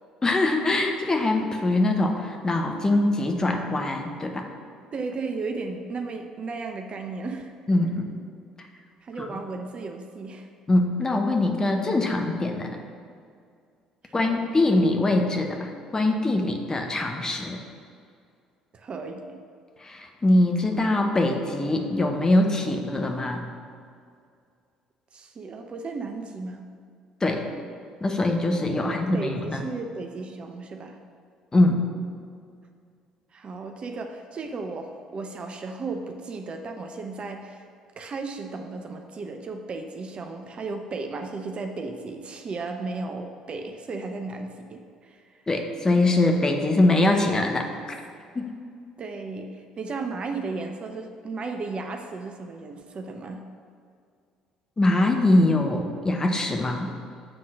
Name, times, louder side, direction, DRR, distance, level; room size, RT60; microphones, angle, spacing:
voice 1, 0.2-4.5 7.7-8.1 9.2-9.4 10.7-12.7 14.1-17.6 19.8-23.4 27.2-27.4 28.0-29.6 31.5-31.8 45.5-47.7 48.3-48.5 54.8-56.9, left 2 dB, 20° left, 3 dB, 1.0 m, -23 dB
voice 2, 4.9-7.5 9.0-10.5 14.0-14.4 18.7-19.4 25.1-26.7 28.8-31.0 33.3-37.7 38.0-45.2 49.0-53.4, right 3 dB, 40° right, 5 dB, 0.7 m, -35 dB
7.6 x 3.8 x 6.2 m, 2.2 s
figure-of-eight pair, 50°, 3 cm